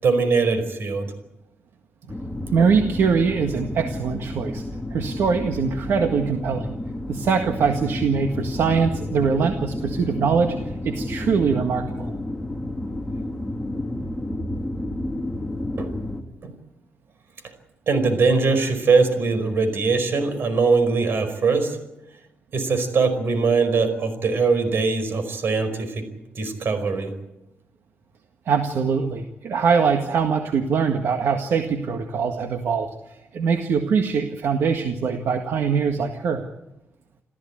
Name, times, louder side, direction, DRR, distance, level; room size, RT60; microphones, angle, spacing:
voice 1, 0.0-1.1 15.8-15.9 16.4-16.5 17.9-21.8 22.5-26.0 26.3-27.1, right 4 dB, 60° right, 10 dB, 5.0 m, -21 dB
sound 1, 2.1-16.2, left 1 dB, 10° left, 2.0 m, -31 dB
voice 2, 2.5-4.6 4.9-6.8 7.1-12.1 28.5-36.5, right 5 dB, 75° right, 5 dB, 1.8 m, -22 dB
28.0 x 14.5 x 8.7 m, 0.92 s
wide cardioid pair, 135°, 4 cm